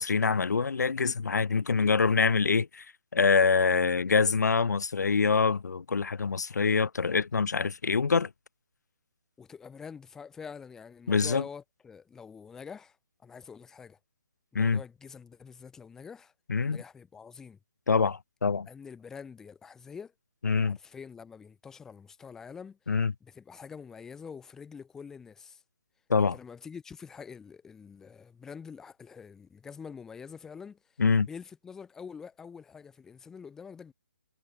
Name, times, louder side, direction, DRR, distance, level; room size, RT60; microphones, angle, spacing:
voice 1, 0.0-2.8 3.1-8.3 11.1-11.4 14.5-14.8 16.5-16.8 17.9-18.7 20.4-20.8 22.9-23.1 26.1-26.3 31.0-31.3, left 5 dB, 85° left, 0.8 m, -25 dB
voice 2, 9.4-13.0 13.2-14.0 14.5-16.3 16.6-17.6 18.7-20.1 20.6-22.9 23.2-25.6 26.3-33.9, left 6 dB, 5° left, 1.1 m, -46 dB
hypercardioid pair, 165°, 9 cm